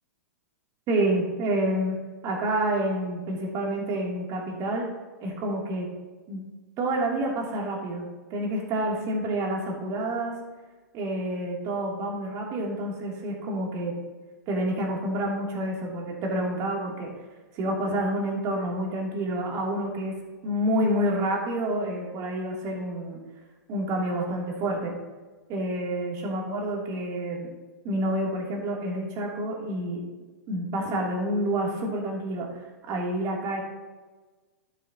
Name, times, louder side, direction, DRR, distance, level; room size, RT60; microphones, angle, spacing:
voice 1, 0.9-2.0 2.2-4.9 5.2-5.9 6.3-6.4 6.8-10.3 10.9-13.9 14.5-17.1 17.6-20.1 20.4-23.2 23.7-24.9 25.5-27.5 27.8-30.0 30.5-32.5 32.9-33.6, right 1 dB, 35° right, -1 dB, 2.9 m, -28 dB
11.5 x 9.9 x 2.9 m, 1.3 s
hypercardioid pair, 120°, 9 cm